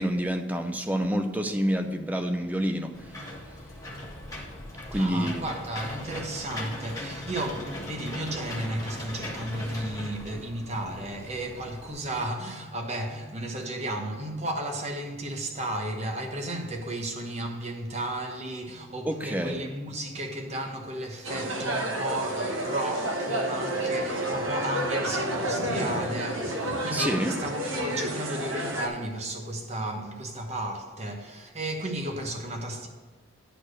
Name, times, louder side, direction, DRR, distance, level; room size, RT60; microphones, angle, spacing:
voice 1, 0.0-2.9 4.9-5.4 19.0-19.7 26.9-27.4, equal, 10° right, 0.5 m, -27 dB
Engine / Mechanisms, 2.9-11.9, left 1 dB, 15° left, 1.5 m, -39 dB
voice 2, 4.9-32.9, right 1 dB, 35° right, 1.0 m, -34 dB
sound 1, 21.2-28.9, right 1 dB, 75° right, 1.2 m, -30 dB
10.0 x 4.4 x 6.4 m
head